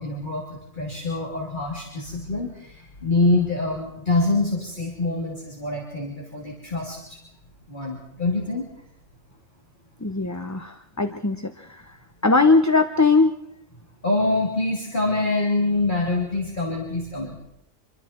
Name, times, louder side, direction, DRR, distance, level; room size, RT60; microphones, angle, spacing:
voice 1, 0.0-7.2 7.7-8.7 14.0-17.3, left 2 dB, 40° left, -2 dB, 3.3 m, -25 dB
voice 2, 10.0-11.9 12.2-13.3, left 3 dB, 15° left, 7 dB, 0.8 m, -20 dB
26.0 x 23.0 x 4.5 m, 0.74 s
omnidirectional pair, 1.3 m